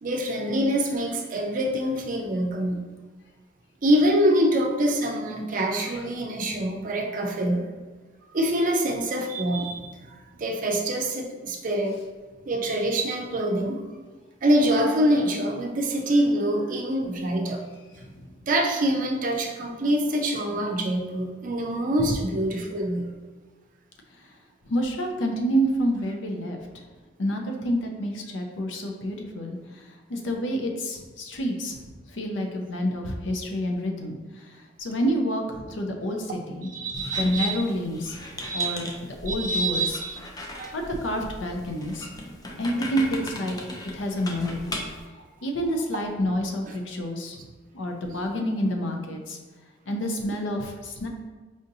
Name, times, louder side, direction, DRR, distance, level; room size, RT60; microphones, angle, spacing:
voice 1, 0.0-2.8 3.8-7.6 8.3-9.9 10.4-12.0 12.5-13.8 14.4-17.6 18.5-23.1 36.7-37.6 38.4-38.8 39.3-40.2 40.5-40.7 48.1-48.2, right 1 dB, 45° right, 2 dB, 0.5 m, -25 dB
voice 2, 24.7-26.6 27.2-36.7 37.2-38.2 38.5-38.9 39.2-40.0 40.7-42.1 42.6-43.6 43.9-44.7 45.4-47.4 47.7-49.4 49.9-51.1, equal, 80° left, 2 dB, 0.5 m, -28 dB
Squeak, 36.9-45.1, left 1 dB, 20° left, 0.4 m, -38 dB
4.8 x 2.6 x 2.7 m, 1.3 s
head